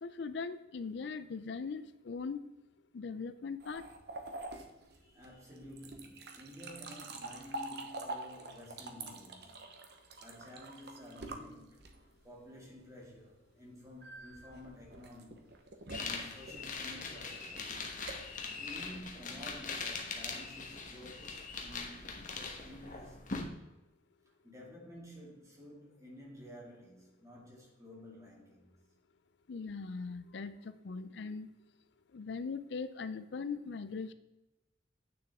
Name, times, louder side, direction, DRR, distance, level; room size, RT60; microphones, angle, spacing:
voice 1, 0.0-2.4 2.9-3.8 29.5-31.5 32.1-34.1, left 4 dB, 65° left, 0.4 m, -40 dB
sound 1, 3.6-12.2 14.0-19.7, right 2 dB, 60° right, 1.0 m, -46 dB
voice 2, 4.8-9.8 10.2-15.5 15.9-17.7 18.5-23.7 24.3-28.7, equal, 15° right, 2.3 m, -52 dB
sound 2, 15.9-23.4, left 4 dB, 45° left, 1.2 m, -41 dB
8.9 x 6.6 x 3.6 m
head